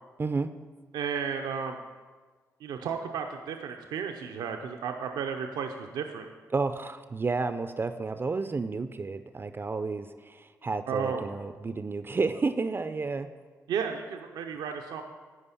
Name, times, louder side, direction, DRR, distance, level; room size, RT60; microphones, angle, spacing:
voice 1, 0.2-0.5 6.5-13.3, right 4 dB, 30° right, 10 dB, 0.4 m, -31 dB
voice 2, 0.9-1.8 2.6-6.3 10.9-11.3 13.7-15.0, right 6 dB, 90° right, 4 dB, 0.5 m, -33 dB
9.8 x 4.8 x 7.0 m, 1.5 s
cardioid pair, 65°, 7 cm